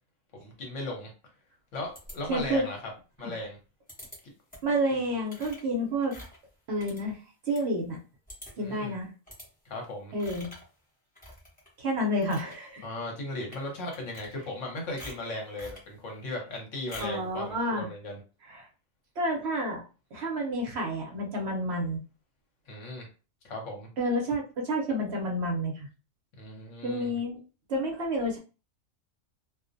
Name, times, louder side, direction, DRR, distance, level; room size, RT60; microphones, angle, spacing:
voice 1, 0.4-1.1 1.7-2.8 3.2-3.6 4.2-4.3 8.6-9.0 9.6-10.1 12.8-18.2 22.7-23.1 23.4-23.9 26.4-27.2, left 2 dB, 70° left, 1 dB, 1.1 m, -37 dB
sound 1, 1.9-2.6 3.9-4.2 4.5-4.8 5.3-7.7 8.0-8.1 8.3-8.7 9.3-9.5 10.2-10.7 11.1-11.7 12.1-12.5 13.4-13.6 13.9-14.6 15.0-15.9 16.9-17.2, left 1 dB, 10° left, 0.7 m, -47 dB
voice 2, 2.3-2.6 3.2-3.3 4.6-6.1 6.7-7.2 7.5-8.0 8.6-9.1 10.1-10.5 11.8-12.8 17.0-17.9 18.4-18.7 19.2-19.8 20.1-22.0 24.0-25.9 26.8-27.4 27.7-28.4, equal, 60° right, 1 dB, 0.8 m, -29 dB
2.4 x 2.0 x 2.5 m, 0.33 s
omnidirectional pair, 1.4 m